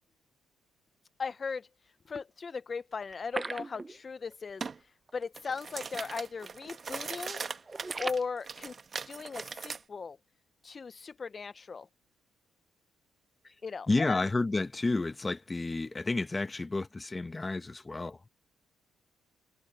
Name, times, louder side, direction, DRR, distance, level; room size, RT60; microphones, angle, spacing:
voice 1, 1.2-1.7 2.1-7.4 8.0-8.8 9.1-10.2 10.6-11.9 13.6-14.2, left 5 dB, 35° left, 0.5 m, -37 dB
sound 1, 3.1-4.3 4.6-4.7 5.1-5.2 5.8-6.0 6.3-6.7 7.0-8.2, right 3 dB, 20° right, 0.6 m, -39 dB
sound 2, 4.6-4.8 5.2-9.8, right 5 dB, 40° right, 1.1 m, -40 dB
voice 2, 13.9-18.3, left 3 dB, 20° left, 1.0 m, -31 dB
cardioid pair, 90°, 0 cm